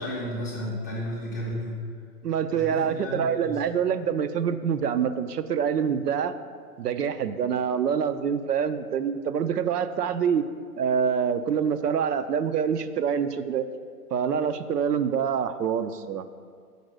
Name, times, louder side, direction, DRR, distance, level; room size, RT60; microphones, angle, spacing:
voice 1, 0.0-1.9 2.5-3.6, left 1 dB, 15° left, -6 dB, 0.4 m, -33 dB
voice 2, 2.2-6.3 6.8-10.4 10.8-13.7 14.1-16.3, right 7 dB, 85° right, 10 dB, 0.5 m, -26 dB
5.3 x 4.4 x 6.2 m, 2.1 s
hypercardioid pair, 125°, 46 cm